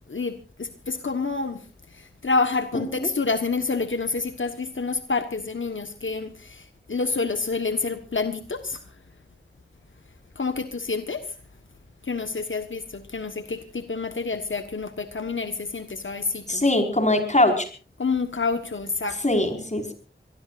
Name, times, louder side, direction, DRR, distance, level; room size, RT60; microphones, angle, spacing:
voice 1, 0.1-8.8 10.3-11.3 12.0-16.6 18.0-19.2, left 4 dB, 85° left, 8 dB, 1.4 m, -28 dB
voice 2, 16.5-17.6 19.2-19.9, left 1 dB, 35° left, 6 dB, 5.2 m, -21 dB
25.5 x 19.5 x 2.6 m, 0.38 s
wide cardioid pair, 55°, 20 cm